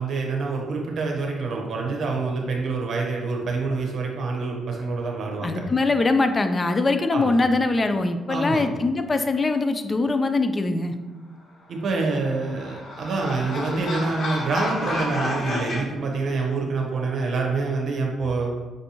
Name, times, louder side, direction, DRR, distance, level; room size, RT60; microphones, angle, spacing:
voice 1, 0.0-5.6 7.1-7.3 8.3-8.7 11.7-18.5, right 3 dB, 60° right, 1 dB, 0.8 m, -26 dB
voice 2, 5.4-10.9, left 3 dB, 30° left, 8 dB, 0.3 m, -22 dB
sound 1, 11.9-15.8, left 1 dB, 50° left, 0.7 m, -31 dB
5.4 x 2.6 x 2.8 m, 1.2 s
cardioid pair, 90°, 0 cm